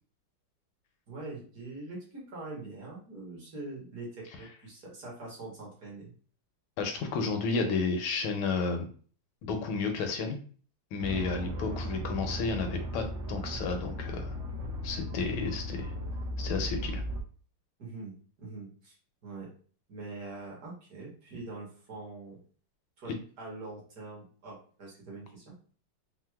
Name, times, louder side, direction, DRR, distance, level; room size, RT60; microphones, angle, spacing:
voice 1, 1.1-6.1 11.1-11.3 17.8-18.9 19.2-19.5 19.9-22.4 23.0-25.5, right 3 dB, 50° right, -3 dB, 1.3 m, -43 dB
voice 2, 6.8-8.9 9.4-10.4 10.9-14.4 14.8-15.9 16.4-17.0, left 4 dB, 80° left, 4 dB, 1.3 m, -32 dB
sound 1, 11.0-17.2, equal, 80° right, 1.6 m, -36 dB
4.5 x 2.0 x 2.2 m, 0.43 s
omnidirectional pair, 2.4 m